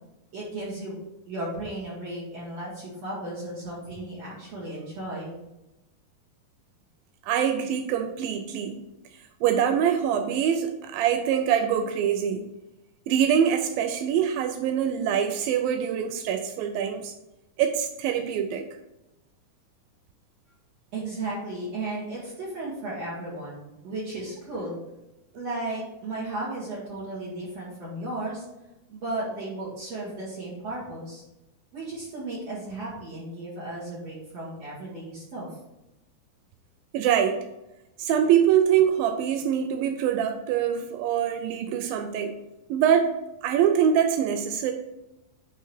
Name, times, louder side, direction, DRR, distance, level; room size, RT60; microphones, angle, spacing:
voice 1, 0.3-1.0 1.3-5.3 20.9-24.8 25.3-28.4 28.9-31.2 31.7-35.5, right 2 dB, 50° right, -8 dB, 3.1 m, -35 dB
voice 2, 7.3-8.8 9.4-12.5 13.1-17.1 17.6-18.6 36.9-37.4 38.0-42.4 42.7-43.1 43.4-44.7, right 8 dB, 85° right, 6 dB, 2.4 m, -24 dB
10.0 x 3.8 x 4.4 m, 0.94 s
omnidirectional pair, 4.1 m